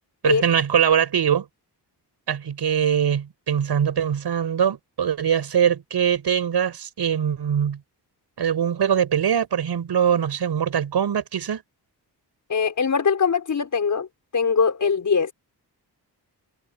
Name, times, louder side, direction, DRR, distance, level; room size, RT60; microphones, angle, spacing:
voice 1, 0.2-1.5 2.3-7.8 8.4-11.6, right 8 dB, 75° right, 5.5 m, -22 dB
voice 2, 12.5-14.1 14.3-15.3, left 6 dB, 50° left, 5.8 m, -21 dB
wide cardioid pair, 160°, 40 cm